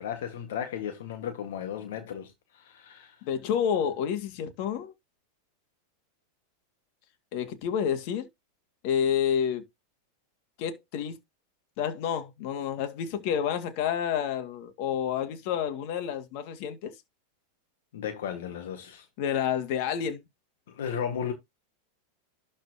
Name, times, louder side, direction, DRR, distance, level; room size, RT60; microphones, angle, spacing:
voice 1, 0.0-3.2 17.9-19.1 20.7-21.3, left 8 dB, 75° left, 1.6 m, -35 dB
voice 2, 3.2-4.9 7.3-8.3 8.8-9.7 10.6-11.2 11.8-16.9 19.2-20.2, left 8 dB, 60° left, 2.1 m, -29 dB
12.0 x 4.3 x 2.9 m
hypercardioid pair, 110°, 0 cm